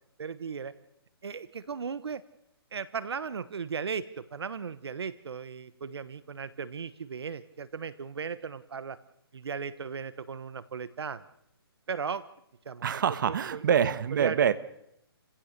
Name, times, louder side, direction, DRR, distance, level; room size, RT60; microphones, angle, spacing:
voice 1, 0.2-0.7 1.2-2.2 2.7-9.0 9.3-11.2 11.9-12.2 12.6-12.8 13.3-13.6 14.1-14.4, right 6 dB, 80° right, 15 dB, 1.2 m, -36 dB
voice 2, 12.8-14.5, right 8 dB, 50° right, 13 dB, 1.4 m, -25 dB
29.5 x 16.0 x 6.7 m, 0.78 s
hypercardioid pair, 160°, 13 cm